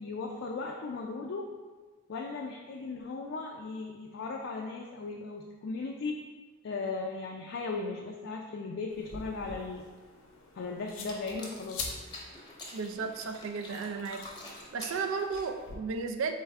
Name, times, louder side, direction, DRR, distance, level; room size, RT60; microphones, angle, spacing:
voice 1, 0.0-1.5 2.1-6.2 6.6-9.9 10.6-11.9, left 3 dB, 60° left, 0 dB, 0.3 m, -37 dB
sound 1, 8.9-15.8, left 3 dB, 90° left, 0.7 m, -46 dB
sound 2, 10.9-15.8, left 2 dB, 20° left, 0.7 m, -47 dB
voice 2, 12.7-14.3 14.7-16.3, right 5 dB, 75° right, 6 dB, 0.4 m, -34 dB
4.3 x 3.3 x 3.5 m, 1.4 s
head